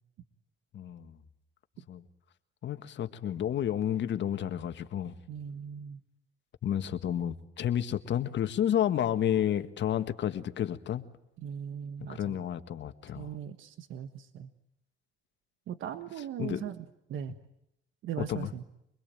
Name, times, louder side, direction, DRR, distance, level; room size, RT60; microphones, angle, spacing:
voice 1, 0.7-1.2 1.9-2.0 2.6-5.1 6.6-11.0 12.0-13.3 16.4-16.6 18.2-18.5, left 10 dB, 65° left, 10 dB, 1.7 m, -31 dB
voice 2, 5.3-6.0 11.4-12.4 13.1-14.5 15.7-16.8 17.1-17.4 18.0-18.6, right 9 dB, 85° right, 10 dB, 1.5 m, -39 dB
26.0 x 21.5 x 9.0 m, 0.81 s
cardioid pair, 90°, 20 cm